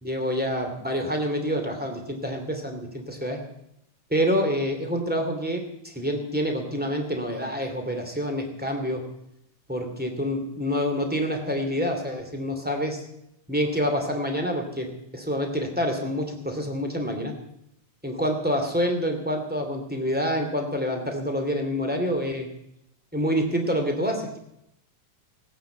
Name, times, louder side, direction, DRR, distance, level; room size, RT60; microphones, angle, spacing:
voice 1, 0.0-3.4 4.1-9.0 9.7-13.0 13.5-17.3 18.0-22.5 23.1-24.4, equal, 5° right, 3 dB, 2.1 m, -27 dB
18.0 x 9.6 x 8.1 m, 0.79 s
omnidirectional pair, 3.5 m